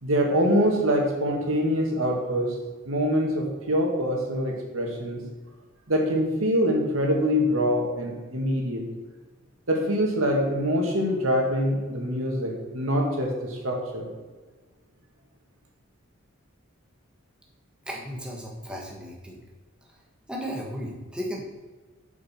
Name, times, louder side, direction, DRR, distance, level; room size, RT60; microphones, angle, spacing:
voice 1, 0.0-2.5 2.9-5.2 5.9-8.8 9.7-14.1, equal, 75° right, 0 dB, 2.1 m, -24 dB
voice 2, 17.9-19.4 20.3-21.4, equal, 5° right, -2 dB, 1.5 m, -35 dB
9.3 x 7.1 x 4.5 m, 1.3 s
head